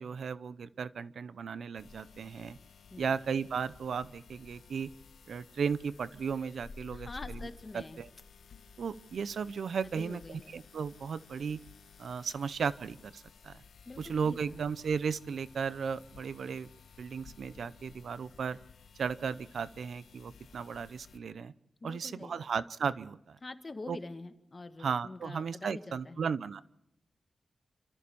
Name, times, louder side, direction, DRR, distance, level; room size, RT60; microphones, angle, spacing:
voice 1, 0.0-2.6 3.0-4.9 5.3-7.4 7.7-8.1 8.8-11.6 12.0-13.6 14.0-16.7 17.0-18.6 19.0-21.5 21.8-23.4 23.9-24.0 24.8-26.6, right 6 dB, 80° right, 16 dB, 0.7 m, -35 dB
sound 1, 1.8-21.2, left 5 dB, 90° left, 1.4 m, -54 dB
voice 2, 6.9-8.0 9.8-10.6 13.8-14.7 21.8-22.5 23.4-26.2, left 3 dB, 35° left, 8 dB, 1.7 m, -46 dB
27.5 x 14.0 x 7.0 m, 0.82 s
wide cardioid pair, 90°, 0 cm